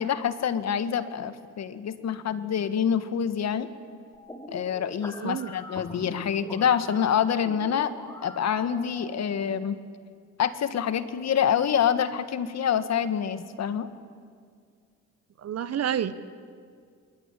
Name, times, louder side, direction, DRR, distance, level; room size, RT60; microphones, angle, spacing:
voice 1, 0.0-3.7 4.5-7.9 8.2-9.8 10.4-13.9, left 8 dB, 60° left, 12 dB, 1.7 m, -26 dB
sound 1, 4.1-9.1, equal, 10° left, 5.9 m, -44 dB
voice 2, 5.2-5.5 15.4-16.1, right 9 dB, 55° right, 14 dB, 1.3 m, -29 dB
26.5 x 21.0 x 10.0 m, 2.1 s
cardioid pair, 90°, 30 cm